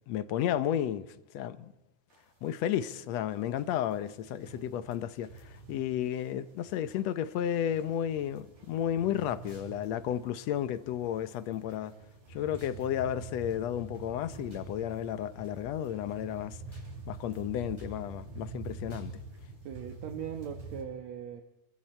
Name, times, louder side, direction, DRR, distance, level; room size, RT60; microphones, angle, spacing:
voice 1, 0.1-1.1 1.3-1.7 2.4-11.9 12.3-16.6 17.1-19.2, left 10 dB, 70° left, 1.9 m, -32 dB
sound 1, 2.1-2.2 2.5-2.6 2.8-2.9 3.3-20.8, right 3 dB, 90° right, 6.2 m, -47 dB
sound 2, 9.5-9.7 12.6-12.8 14.5-14.7 16.7-16.9 17.8-18.0 18.9-19.1, right 1 dB, 10° right, 5.6 m, -60 dB
voice 2, 19.6-21.4, right 8 dB, 65° right, 2.4 m, -39 dB
28.5 x 22.5 x 4.4 m
omnidirectional pair, 3.5 m